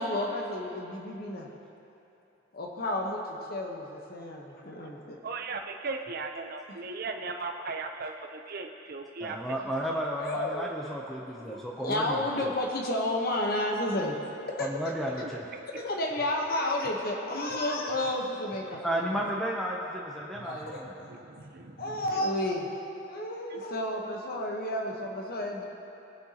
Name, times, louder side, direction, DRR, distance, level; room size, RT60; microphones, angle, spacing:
voice 1, 0.0-1.5 2.5-3.2 3.5-5.2 9.8-9.9 10.2-10.8 11.3-14.7 15.7-19.1 20.4-20.8 21.8-22.7 23.1-25.6, left 1 dB, 50° left, 0 dB, 1.0 m, -31 dB
voice 2, 5.2-9.4 15.2-15.3 20.4-20.7 21.1-22.2 23.5-23.6, right 3 dB, 50° right, 4 dB, 0.6 m, -38 dB
voice 3, 9.2-12.5 14.6-15.4 18.8-20.9, equal, ahead, -2 dB, 0.6 m, -33 dB
18.5 x 7.8 x 2.9 m, 2.8 s
head